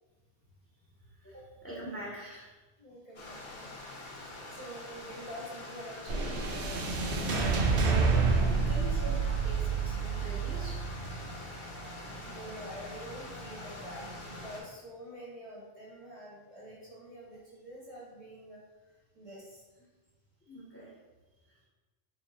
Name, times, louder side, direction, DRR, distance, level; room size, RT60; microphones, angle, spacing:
voice 1, 1.2-2.5 7.3-10.8 20.5-20.9, right 1 dB, 15° left, -6 dB, 0.7 m, -44 dB
voice 2, 2.8-6.9 12.2-18.6 19.1-19.6, equal, 35° right, -5 dB, 0.8 m, -47 dB
Stream, 3.1-14.6, left 2 dB, 50° left, 0.9 m, -45 dB
sound 1, 6.1-14.5, right 4 dB, 75° right, 0.9 m, -30 dB
3.4 x 2.7 x 3.9 m, 1.2 s
omnidirectional pair, 1.1 m